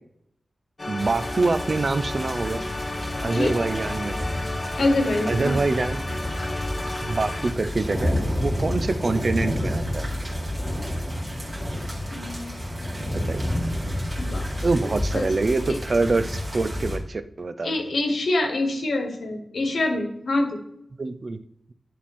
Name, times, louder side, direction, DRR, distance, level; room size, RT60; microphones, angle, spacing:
sound 1, 0.8-7.5, left 2 dB, 30° left, 0.7 m, -33 dB
voice 1, 0.9-2.6 3.2-4.3 4.8-4.9 5.3-6.2 7.0-8.2 8.4-10.0 13.3-13.5 14.6-18.0 20.9-21.4, right 3 dB, 45° right, 11 dB, 0.4 m, -25 dB
sound 2, 1.0-17.0, equal, 20° right, 2.1 m, -30 dB
voice 2, 4.8-5.6 12.1-12.5 14.2-14.5 14.8-15.3 17.6-20.6, left 2 dB, 75° left, 4 dB, 1.3 m, -25 dB
10.0 x 3.5 x 4.3 m, 0.77 s
wide cardioid pair, 130°, 0 cm